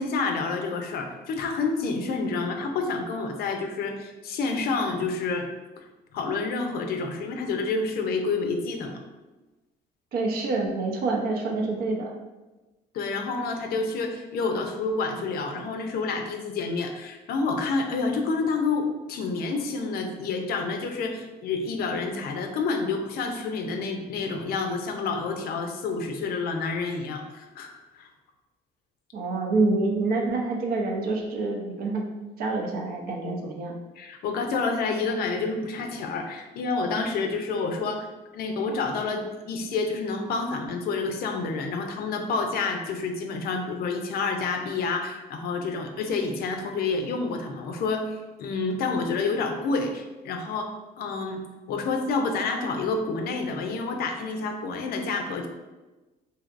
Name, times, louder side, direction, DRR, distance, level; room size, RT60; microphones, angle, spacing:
voice 1, 0.0-5.5 5.8-5.9 6.1-9.0 12.9-28.1 34.0-38.1 38.3-50.7 51.0-51.4 51.7-55.5, left 4 dB, 65° left, 4 dB, 0.5 m, -29 dB
voice 2, 10.1-12.1 29.1-32.1 32.4-33.7, right 3 dB, 65° right, 1 dB, 0.6 m, -27 dB
3.2 x 2.7 x 2.5 m, 1.1 s
cardioid pair, 110°, 17 cm